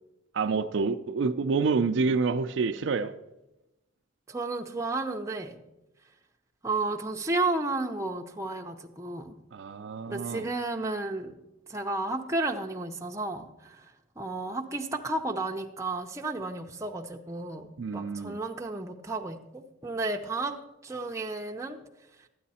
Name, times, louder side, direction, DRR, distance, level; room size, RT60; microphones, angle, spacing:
voice 1, 0.3-3.1 9.5-10.5 17.8-18.4, right 4 dB, 65° right, 0.4 m, -28 dB
voice 2, 4.3-5.6 6.6-9.3 10.1-11.4 11.7-20.6 20.8-21.8, right 2 dB, 15° right, 0.6 m, -32 dB
11.5 x 9.3 x 4.2 m
head